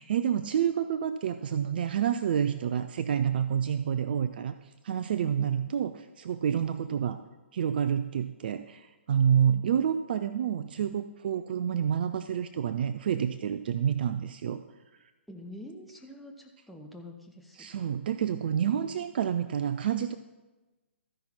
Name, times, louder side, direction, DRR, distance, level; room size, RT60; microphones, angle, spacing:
voice 1, 0.0-4.5 4.8-7.2 7.5-14.6 17.6-20.2, right 8 dB, 50° right, 11 dB, 0.4 m, -28 dB
voice 2, 15.3-17.7 18.8-19.0, left 1 dB, ahead, 0 dB, 0.7 m, -46 dB
13.5 x 5.7 x 4.3 m, 1.1 s
figure-of-eight pair, 125°, 7 cm